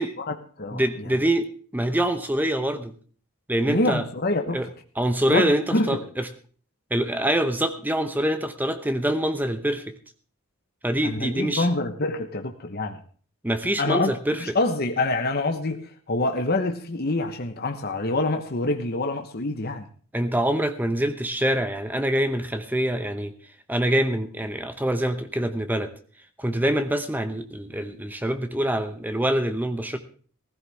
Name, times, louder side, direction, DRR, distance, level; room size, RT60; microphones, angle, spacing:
voice 1, 0.2-1.2 3.7-4.7 5.3-6.0 11.0-13.0 13.8-19.9, left 2 dB, 45° left, 5 dB, 1.1 m, -26 dB
voice 2, 0.7-2.9 3.5-4.0 4.5-4.7 5.0-6.3 6.9-9.9 10.8-11.7 13.4-14.6 20.1-23.3 23.7-25.9 26.4-30.0, right 1 dB, 10° right, 9 dB, 0.8 m, -25 dB
16.0 x 15.5 x 3.5 m, 0.44 s
head